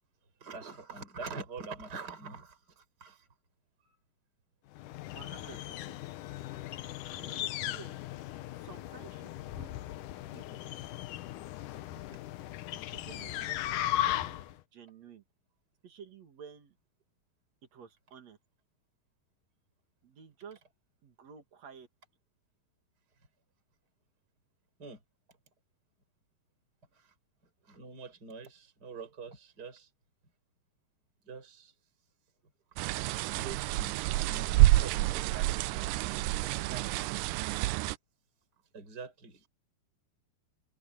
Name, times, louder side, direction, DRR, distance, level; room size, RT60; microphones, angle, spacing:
voice 1, 0.4-3.3 3.8-4.0 11.8-12.2 24.8-25.0 26.9-27.1 27.6-29.9 31.2-31.7 33.3-34.0 34.2-35.3 38.7-39.5, right 4 dB, 25° right, 5.4 m, -45 dB
sound 1, 4.7-14.6, left 13 dB, 75° left, 2.0 m, -37 dB
voice 2, 5.1-6.0 7.2-8.0 8.6-9.8 10.3-10.8 12.7-15.2 15.8-16.7 17.7-18.4 20.0-20.6 21.0-21.9 35.1-35.6 36.4-37.1, right 7 dB, 50° right, 3.1 m, -51 dB
sound 2, 32.8-38.0, right 17 dB, 85° right, 1.9 m, -28 dB
omnidirectional pair, 4.3 m